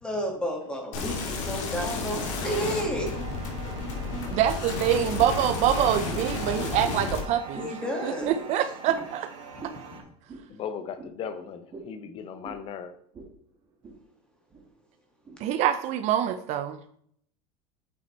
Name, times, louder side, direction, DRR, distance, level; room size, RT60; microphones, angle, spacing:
voice 1, 0.0-3.2 7.6-8.4, equal, 5° left, 1.9 m, -31 dB
sound 1, 0.9-7.2, left 3 dB, 75° left, 2.6 m, -32 dB
sound 2, 2.4-10.0, right 5 dB, 60° right, 2.6 m, -43 dB
voice 2, 2.6-3.3 4.3-4.4 6.3-6.5 9.8-10.0 10.5-12.9, left 7 dB, 35° left, 0.9 m, -38 dB
voice 3, 4.3-7.7 8.0-9.3 15.4-16.8, right 10 dB, 45° right, 0.5 m, -25 dB
sound 3, 6.1-6.4 6.8-7.1 7.5-7.7 8.2-8.4 8.8-9.1 9.6-9.8 10.3-10.5 11.0-11.1 11.7-11.9 12.4-12.6 13.1-13.3 13.6-14.0 14.5-14.6 15.3-15.4, right 4 dB, 25° right, 1.8 m, -42 dB
8.2 x 5.6 x 4.4 m
supercardioid pair, 145°, 16 cm